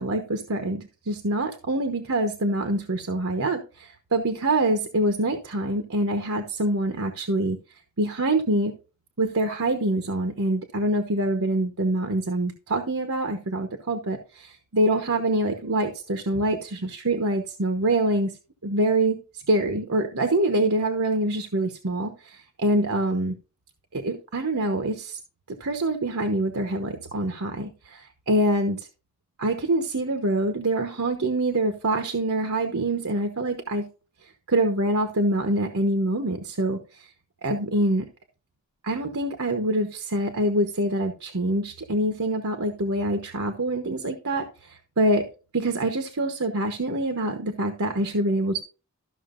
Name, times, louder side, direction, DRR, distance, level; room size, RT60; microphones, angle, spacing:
voice 1, 0.0-7.6 8.0-8.7 9.2-18.3 18.6-19.2 19.5-23.4 23.9-25.2 25.5-28.9 29.4-33.9 34.5-37.1 37.4-38.1 38.8-45.3 45.5-48.6, right 1 dB, 70° right, 6 dB, 1.1 m, -25 dB
13.5 x 6.3 x 2.5 m, 0.33 s
head